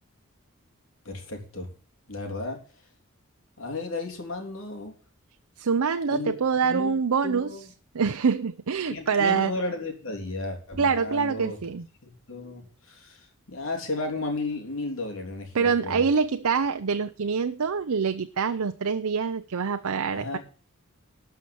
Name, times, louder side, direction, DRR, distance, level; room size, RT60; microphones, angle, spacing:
voice 1, 1.0-1.7 2.1-2.6 3.6-4.9 6.1-6.4 6.6-7.0 7.2-7.7 8.9-11.6 12.0-16.1 20.1-20.4, left 2 dB, 65° left, 3 dB, 3.3 m, -34 dB
voice 2, 5.6-7.5 7.9-9.5 10.8-11.9 15.5-20.4, right 5 dB, 90° right, 9 dB, 0.6 m, -25 dB
12.5 x 5.7 x 8.5 m, 0.40 s
head